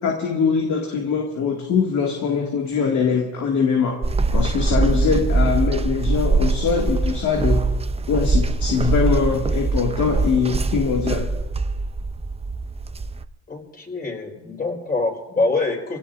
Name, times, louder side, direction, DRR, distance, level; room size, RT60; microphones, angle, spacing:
voice 1, 0.0-4.0 4.3-7.7 8.1-11.3, left 5 dB, 70° left, 0 dB, 2.3 m, -22 dB
sound 1, 4.0-13.3, right 3 dB, 20° right, 0.6 m, -22 dB
voice 2, 13.5-16.0, left 3 dB, 30° left, 0 dB, 4.5 m, -25 dB
28.0 x 17.5 x 2.7 m, 1.1 s
cardioid pair, 90°, 30 cm